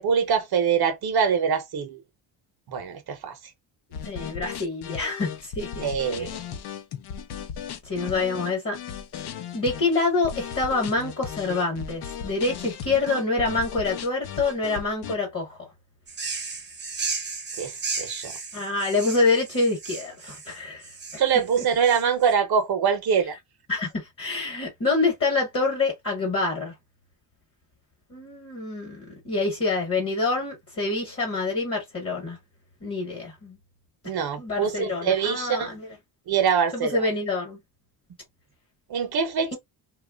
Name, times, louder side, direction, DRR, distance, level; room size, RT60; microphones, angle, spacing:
voice 1, 0.0-2.0 2.7-3.4 5.8-6.3 17.6-18.4 21.2-23.4 34.0-35.7 36.3-37.1 38.9-39.6, right 7 dB, 60° right, 0.7 m, -24 dB
sound 1, 3.9-15.1, left 8 dB, 60° left, 0.6 m, -36 dB
voice 2, 4.0-5.8 6.1-6.3 7.8-8.8 9.1-9.2 9.5-15.7 18.5-20.9 23.7-26.7 28.1-32.4 32.8-33.6 34.4-35.9 36.7-37.6, left 3 dB, 30° left, 1.1 m, -26 dB
sound 2, 16.1-22.3, right 4 dB, 25° right, 0.6 m, -34 dB
3.0 x 2.3 x 2.2 m
wide cardioid pair, 170°, 44 cm